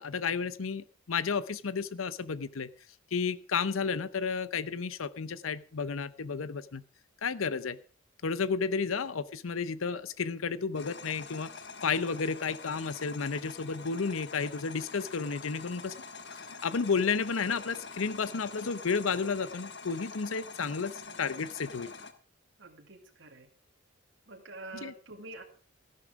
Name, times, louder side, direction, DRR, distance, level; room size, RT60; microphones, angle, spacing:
voice 1, 0.0-2.7 3.1-6.8 7.2-7.8 8.2-11.5 11.8-15.9 16.3-21.9 24.8-24.9, left 5 dB, 85° left, 16 dB, 0.7 m, -32 dB
voice 2, 8.8-9.1 22.6-23.5 24.3-25.4, right 2 dB, 65° right, 2 dB, 2.2 m, -47 dB
sound 1, 10.7-22.1, left 4 dB, 55° left, 1.5 m, -45 dB
14.5 x 11.5 x 4.7 m, 0.41 s
head